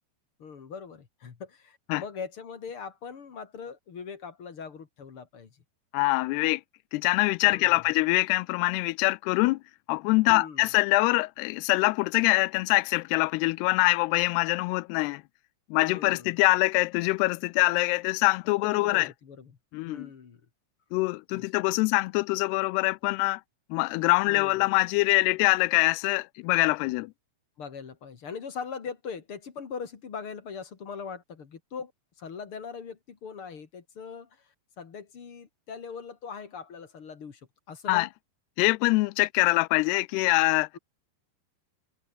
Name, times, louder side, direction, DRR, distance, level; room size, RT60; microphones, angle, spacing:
voice 1, 0.4-5.5 7.5-7.8 10.3-10.7 15.8-16.4 18.4-19.5 19.9-20.4 21.3-21.5 24.3-24.7 27.6-31.9 32.2-34.3 34.8-37.4 37.7-38.1 40.7-40.8, left 6 dB, 40° left, 2.4 m, -41 dB
voice 2, 5.9-6.6 6.9-9.6 9.9-15.2 15.7-19.1 19.7-20.1 20.9-23.4 23.7-27.1 37.9-38.1 38.6-40.7, left 23 dB, 85° left, 2.6 m, -24 dB
omnidirectional pair, 4.7 m